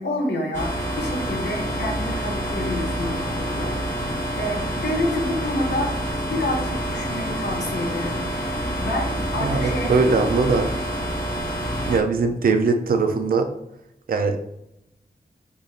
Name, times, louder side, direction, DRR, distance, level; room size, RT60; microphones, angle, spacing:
voice 1, 0.0-5.9 6.2-10.2, left 1 dB, 90° left, 0 dB, 0.9 m, -29 dB
sound 1, 0.5-12.0, equal, 15° left, 1.1 m, -27 dB
voice 2, 9.4-10.7 11.9-13.5 14.1-14.4, right 4 dB, 60° right, 6 dB, 0.4 m, -21 dB
4.6 x 2.6 x 2.4 m, 0.81 s
wide cardioid pair, 90°, 17 cm